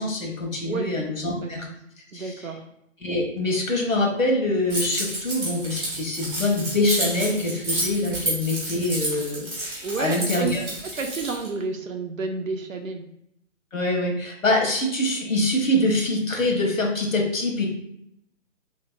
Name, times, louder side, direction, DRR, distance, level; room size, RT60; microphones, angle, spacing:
voice 1, 0.0-1.7 2.1-2.5 3.0-9.7 10.0-10.6 13.7-17.7, left 1 dB, 90° left, 1 dB, 1.0 m, -24 dB
voice 2, 2.1-2.6 9.8-10.6 11.0-13.0, right 4 dB, 85° right, 4 dB, 0.7 m, -30 dB
Keys jangling, 4.7-11.5, right 1 dB, 10° right, 0.6 m, -30 dB
3.1 x 2.7 x 2.5 m, 0.75 s
figure-of-eight pair, 145°, 38 cm